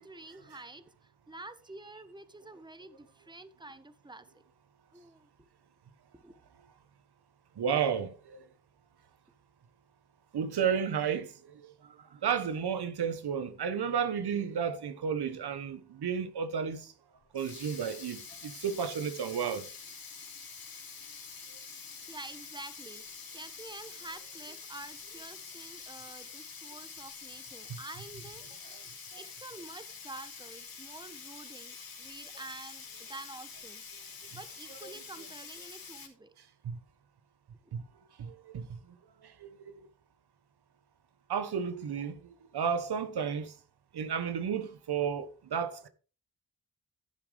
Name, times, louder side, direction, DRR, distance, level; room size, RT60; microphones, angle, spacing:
voice 1, 0.0-4.4 4.9-5.3 6.1-6.4 22.1-23.0 23.3-33.8 34.3-36.3, right 2 dB, 10° right, 1.3 m, -48 dB
voice 2, 7.5-8.5 10.3-16.9 17.3-19.7 21.5-21.6 27.7-27.8 28.7-28.8 29.1-29.2 34.3-34.4 34.7-34.9 36.4-36.8 37.7-37.9 38.2-39.9 41.3-43.6 43.9-45.9, right 7 dB, 85° right, 1.3 m, -33 dB
Sink (filling or washing), 17.2-36.1, left 5 dB, 65° left, 3.2 m, -47 dB
15.0 x 7.5 x 3.5 m
cardioid pair, 55°, 38 cm